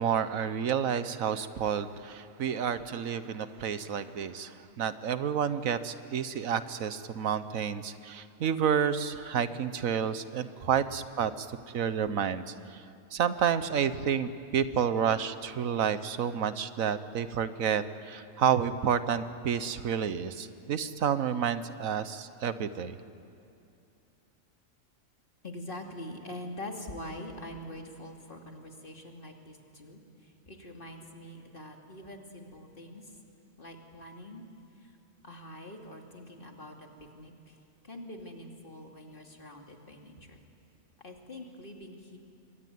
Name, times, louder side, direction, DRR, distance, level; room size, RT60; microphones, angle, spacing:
voice 1, 0.0-11.5 11.7-12.8 13.1-23.0, right 8 dB, 90° right, 13 dB, 1.4 m, -30 dB
voice 2, 25.4-33.2 33.6-34.4 34.7-35.0 35.2-40.4 41.0-42.2, left 1 dB, 40° left, 2 dB, 2.7 m, -44 dB
27.0 x 23.5 x 9.4 m, 2.6 s
omnidirectional pair, 1.4 m